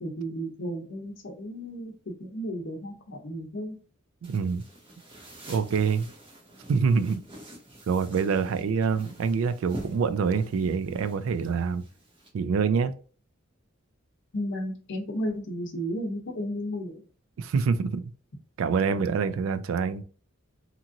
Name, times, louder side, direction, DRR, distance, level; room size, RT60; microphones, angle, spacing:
voice 1, 0.0-3.8 14.3-17.0, equal, 60° left, 0.7 m, -33 dB
sound 1, 4.2-12.3, right 1 dB, 25° right, 0.8 m, -46 dB
voice 2, 4.2-4.6 5.5-6.1 6.7-7.2 7.9-11.8 12.3-12.9 17.4-18.1 18.6-20.0, right 5 dB, 70° right, 0.3 m, -26 dB
2.9 x 2.5 x 2.6 m
head